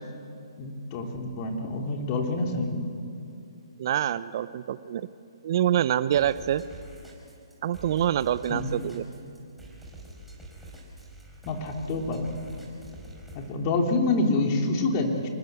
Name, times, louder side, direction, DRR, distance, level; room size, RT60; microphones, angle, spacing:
voice 1, 0.6-2.9 8.5-8.7 11.4-12.3 13.3-15.3, left 2 dB, 35° left, 2 dB, 3.0 m, -27 dB
voice 2, 3.8-5.1 5.4-6.6 7.6-9.0, right 11 dB, 50° right, 16 dB, 0.6 m, -26 dB
sound 1, 6.1-13.5, right 1 dB, 5° right, 4.8 m, -46 dB
25.0 x 20.0 x 8.2 m, 2.6 s
hypercardioid pair, 140°, 3 cm